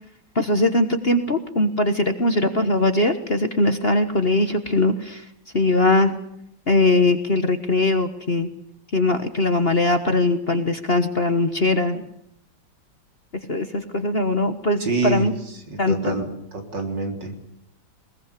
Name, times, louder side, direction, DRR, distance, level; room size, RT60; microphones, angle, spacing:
voice 1, 0.3-5.2 5.5-6.1 6.7-8.5 8.9-12.0 13.5-15.3 15.8-16.1, left 2 dB, 35° left, 8 dB, 1.4 m, -20 dB
voice 2, 14.8-17.4, right 3 dB, 65° right, 4 dB, 4.2 m, -27 dB
22.0 x 21.0 x 8.2 m, 0.72 s
omnidirectional pair, 2.1 m